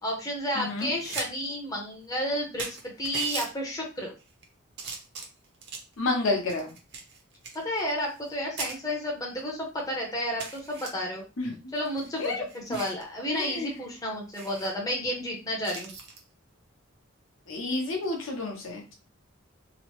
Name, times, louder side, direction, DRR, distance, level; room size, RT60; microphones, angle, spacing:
voice 1, 0.0-4.1 7.5-11.2 11.7-15.9, equal, 15° left, -1 dB, 0.6 m, -31 dB
voice 2, 0.5-0.9 6.0-6.7 11.4-11.5 12.2-12.4 13.3-13.7 17.5-18.9, left 2 dB, 65° left, 1 dB, 0.8 m, -30 dB
sound 1, 0.8-1.3 1.6-1.7 2.3-2.4 2.6-3.5 4.2-4.4 4.8-5.9 6.5-8.3 8.6-8.8 9.4-9.5 9.8-9.9 10.4-10.9 11.8-13.0 13.4-13.6 13.8-13.9 14.3-14.7 15.6-16.2 17.9-18.2, right 4 dB, 55° right, 0.6 m, -39 dB
2.9 x 2.0 x 2.9 m, 0.32 s
head